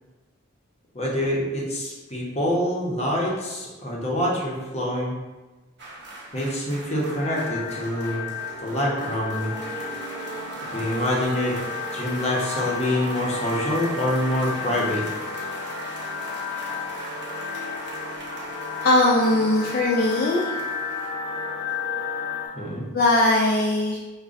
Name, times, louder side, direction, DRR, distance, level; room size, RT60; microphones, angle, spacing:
voice 1, 0.9-5.1 6.3-8.2 8.6-9.5 10.7-11.6 11.9-15.0 22.5-22.8, left 1 dB, 30° left, -4 dB, 0.7 m, -26 dB
sound 1, 5.8-22.1 22.3-22.5, right 2 dB, 55° right, 0.7 m, -39 dB
sound 2, 7.1-22.5, left 5 dB, 85° left, 0.9 m, -33 dB
voice 2, 18.8-20.5 22.9-24.0, left 2 dB, 45° left, -3 dB, 0.3 m, -20 dB
5.0 x 2.2 x 2.4 m, 1.2 s
head